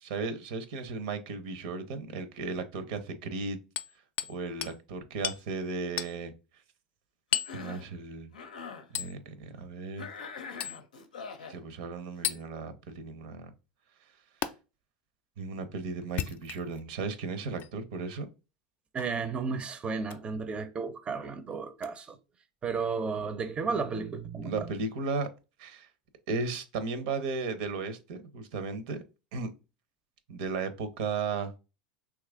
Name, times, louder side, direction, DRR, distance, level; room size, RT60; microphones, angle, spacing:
voice 1, 0.1-3.6 4.3-6.3 7.5-8.3 8.9-10.1 11.5-13.5 15.4-18.3 24.4-25.3 25.6-25.9 26.3-29.0 29.3-29.5 30.3-31.5, right 4 dB, 70° right, 0.6 m, -35 dB
Hammer, 3.8-4.4 4.6-4.8 5.2-5.4 6.0-6.2 7.3-7.6 9.0-9.1 10.6-10.8 12.2-12.4 14.4-14.5 16.0-16.8 17.6-17.7 19.0-19.2 20.0-20.2 21.8-21.9, left 10 dB, 45° left, 0.4 m, -33 dB
Cough, 7.3-7.9 8.3-8.9 10.0-11.6, left 5 dB, 90° left, 0.6 m, -43 dB
voice 2, 18.9-22.2 22.6-24.7, right 5 dB, 25° right, 0.5 m, -33 dB
3.0 x 2.4 x 3.5 m
hypercardioid pair, 95°, 4 cm